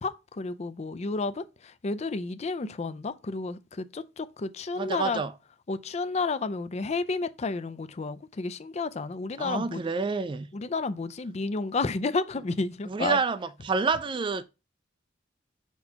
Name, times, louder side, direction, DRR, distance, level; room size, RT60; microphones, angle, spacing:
voice 1, 0.0-5.2 5.7-9.8 10.5-13.2, left 3 dB, 35° left, 0.4 m, -31 dB
voice 2, 4.8-5.3 9.4-10.5 12.9-14.4, right 4 dB, 25° right, 0.3 m, -28 dB
6.2 x 2.9 x 5.5 m
head